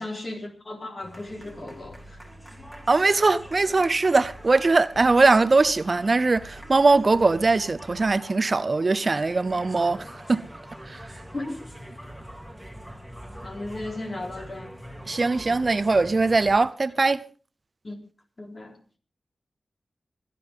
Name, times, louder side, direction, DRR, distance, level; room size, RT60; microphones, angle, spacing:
voice 1, 0.0-2.2 11.3-11.6 13.4-14.7 17.8-18.0 18.4-18.8, left 2 dB, 50° left, 4.1 m, -35 dB
sound 1, 1.0-16.6, equal, ahead, 2.5 m, -44 dB
sound 2, 1.3-8.1, right 1 dB, 90° left, 2.3 m, -50 dB
voice 2, 2.9-10.4 10.9-11.0 15.1-17.2, right 3 dB, 50° right, 0.6 m, -21 dB
26.5 x 10.0 x 3.6 m
cardioid pair, 60°, 0 cm